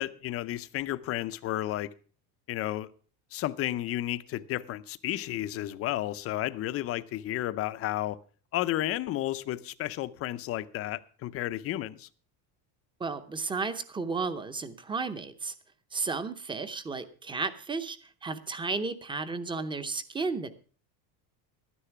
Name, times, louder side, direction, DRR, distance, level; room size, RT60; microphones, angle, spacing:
voice 1, 0.0-1.9 2.5-2.9 3.3-8.2 8.5-12.1, left 14 dB, 30° left, 0.5 m, -32 dB
voice 2, 13.0-15.5 15.9-20.5, right 4 dB, 10° right, 0.7 m, -33 dB
12.5 x 10.0 x 5.8 m
cardioid pair, 150°, 46 cm